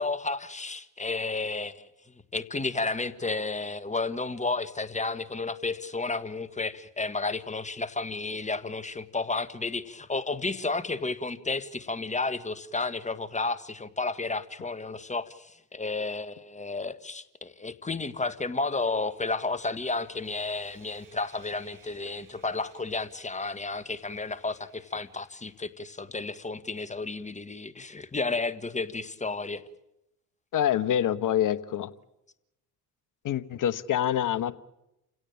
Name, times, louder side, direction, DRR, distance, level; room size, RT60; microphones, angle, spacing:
voice 1, 0.0-1.9 2.3-29.6, left 3 dB, 15° left, 12 dB, 1.6 m, -32 dB
Sawing, 18.7-26.2, right 5 dB, 45° right, 6.9 m, -61 dB
voice 2, 30.5-31.9 33.2-34.5, left 10 dB, 45° left, 15 dB, 1.3 m, -26 dB
28.5 x 17.0 x 8.9 m, 0.90 s
figure-of-eight pair, 55°, 45 cm